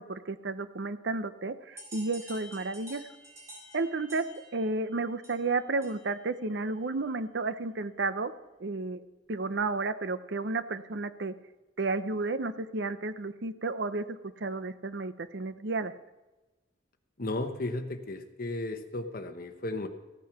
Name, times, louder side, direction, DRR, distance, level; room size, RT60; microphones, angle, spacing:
voice 1, 0.0-3.1 3.7-4.3 4.5-8.3 8.6-11.3 11.8-15.9, right 3 dB, 60° right, 12 dB, 0.7 m, -32 dB
sound 1, 1.8-6.3, equal, 15° right, 4.6 m, -50 dB
voice 2, 17.2-19.9, left 2 dB, 50° left, 7 dB, 1.1 m, -34 dB
15.0 x 9.4 x 6.0 m, 1.1 s
head